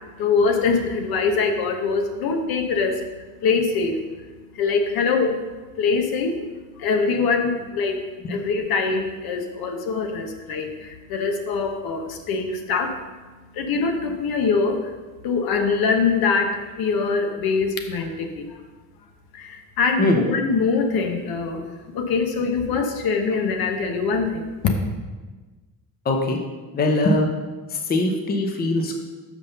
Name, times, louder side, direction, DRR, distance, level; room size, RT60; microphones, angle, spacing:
voice 1, 0.2-3.0 3.4-4.0 4.5-5.4 5.8-6.4 6.8-8.0 8.3-13.0 13.5-14.8 15.2-18.6 19.3-21.6 21.9-24.7, left 4 dB, 70° left, 5 dB, 1.1 m, -23 dB
voice 2, 26.1-26.4 26.7-27.3 27.9-29.0, left 2 dB, 25° left, 3 dB, 0.8 m, -21 dB
5.9 x 5.6 x 6.7 m, 1.3 s
cardioid pair, 170°, 37 cm